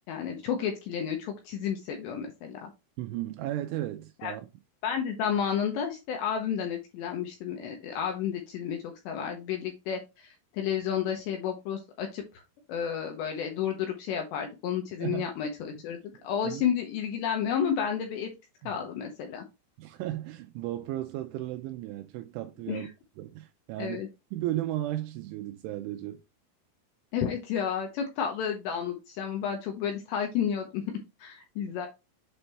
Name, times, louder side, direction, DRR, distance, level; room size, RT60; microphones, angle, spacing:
voice 1, 0.1-2.7 4.2-4.3 4.8-12.2 12.7-18.3 18.7-19.4 22.7-22.9 23.8-24.1 27.1-31.9, left 8 dB, 80° left, 2.6 m, -31 dB
voice 2, 3.0-4.4 15.0-15.3 16.1-16.6 18.6-18.7 19.8-22.9 23.2-24.0 24.3-26.2, right 14 dB, 85° right, 2.8 m, -35 dB
8.0 x 3.4 x 4.1 m
omnidirectional pair, 5.9 m